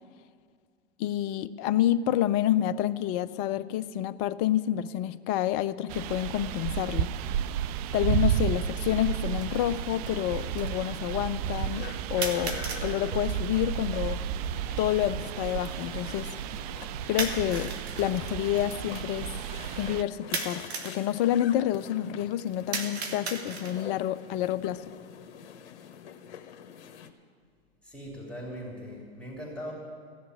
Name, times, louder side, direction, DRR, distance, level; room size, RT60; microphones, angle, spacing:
voice 1, 1.0-7.1 7.9-11.8 12.1-14.2 14.8-16.3 17.1-17.7 18.0-19.3 19.8-24.9, left 12 dB, 30° left, 14 dB, 0.5 m, -28 dB
sound 1, 5.9-20.0, right 10 dB, 35° right, 0.4 m, -32 dB
dropping crutches on tile, 7.9-8.0 8.9-9.0 12.2-12.9 17.2-18.1 20.3-21.0 22.7-23.9, right 4 dB, 75° right, 1.8 m, -34 dB
sound 2, 9.1-27.1, left 8 dB, 60° left, 1.3 m, -46 dB
voice 2, 27.8-29.7, equal, 5° left, -4 dB, 3.4 m, -40 dB
15.0 x 7.3 x 9.7 m, 2.1 s
hypercardioid pair, 115°, 33 cm